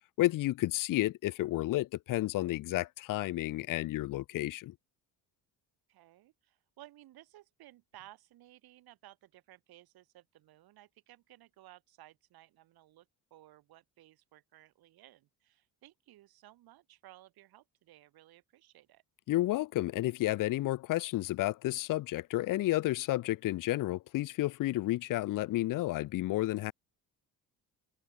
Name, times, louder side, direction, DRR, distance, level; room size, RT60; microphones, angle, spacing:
voice 1, 0.2-4.7 19.3-26.7, left 16 dB, 60° left, 0.6 m, -31 dB
voice 2, 5.9-19.0, right 15 dB, 70° right, 2.4 m, -58 dB
cardioid pair, 105°, 38 cm